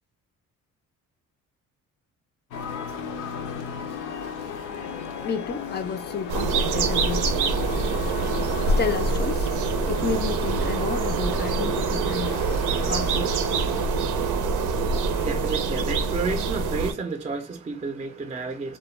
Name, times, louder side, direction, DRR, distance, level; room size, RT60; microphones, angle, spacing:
sound 1, 2.5-13.9, left 7 dB, 80° left, 0.6 m, -36 dB
voice 1, 5.2-7.3 8.7-9.5 9.9-12.4 12.9-13.4 15.1-15.6, left 6 dB, 35° left, 0.4 m, -31 dB
sound 2, 6.3-16.9, right 4 dB, 90° right, 0.6 m, -25 dB
voice 2, 14.8-18.8, right 4 dB, 20° right, 0.5 m, -31 dB
2.2 x 2.2 x 3.1 m
cardioid pair, 90°, 30 cm